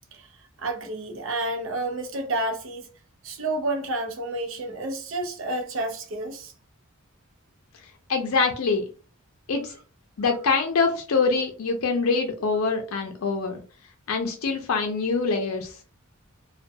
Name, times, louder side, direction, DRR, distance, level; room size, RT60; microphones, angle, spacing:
voice 1, 0.6-2.9 3.2-6.5, right 2 dB, 65° right, 0.5 m, -30 dB
voice 2, 8.1-8.9 9.5-9.8 10.2-13.6 14.1-15.7, left 4 dB, 85° left, 0.4 m, -24 dB
2.2 x 2.2 x 2.6 m
head